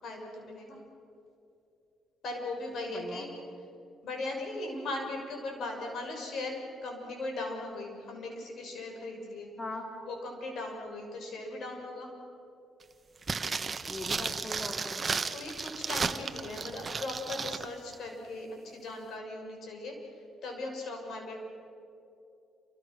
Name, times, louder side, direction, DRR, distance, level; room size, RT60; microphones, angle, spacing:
voice 1, 0.0-0.8 2.2-3.3 4.0-6.5 6.8-9.5 10.0-12.1 15.3-19.9 20.4-21.4, left 2 dB, 70° left, 2 dB, 6.5 m, -38 dB
voice 2, 2.9-3.2 9.6-9.8 13.9-15.0, left 2 dB, 20° left, 3 dB, 2.6 m, -40 dB
sound 1, 13.2-17.7 17.9-18.0, right 4 dB, 35° right, 1.2 m, -34 dB
28.5 x 26.0 x 6.4 m, 2.7 s
cardioid pair, 90°, 0 cm